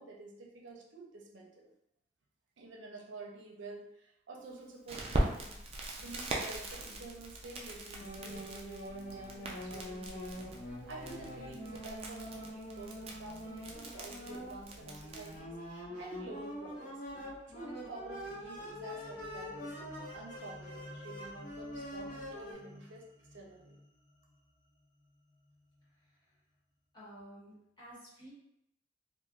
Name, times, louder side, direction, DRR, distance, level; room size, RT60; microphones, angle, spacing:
voice 1, 0.0-1.7 2.6-5.6 6.0-10.4 10.9-15.6 16.0-17.0 17.5-23.8, right 2 dB, 85° right, -1 dB, 0.6 m, -49 dB
Crackle, 4.9-15.4, right 1 dB, 35° right, 0.4 m, -41 dB
sound 1, 8.0-22.5, equal, 45° left, 0.7 m, -45 dB
sound 2, 17.6-26.1, left 1 dB, 80° left, 0.8 m, -55 dB
voice 2, 25.8-26.4 26.9-28.3, right 1 dB, 25° left, -9 dB, 1.1 m, -53 dB
3.2 x 2.1 x 2.4 m, 0.81 s
head